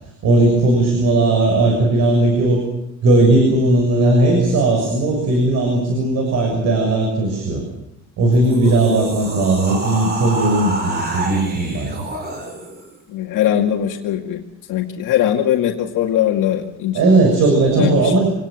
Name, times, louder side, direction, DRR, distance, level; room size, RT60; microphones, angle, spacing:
voice 1, 0.2-2.6 3.0-7.6 8.2-12.0 16.9-18.2, right 2 dB, 60° right, 2 dB, 6.7 m, -16 dB
sound 1, 8.3-12.9, right 2 dB, 35° right, 5.6 m, -28 dB
voice 2, 13.1-14.4 14.7-17.0 17.8-18.2, left 11 dB, 80° left, 1 dB, 2.3 m, -20 dB
26.0 x 19.0 x 7.7 m, 0.82 s
cardioid pair, 170°, 31 cm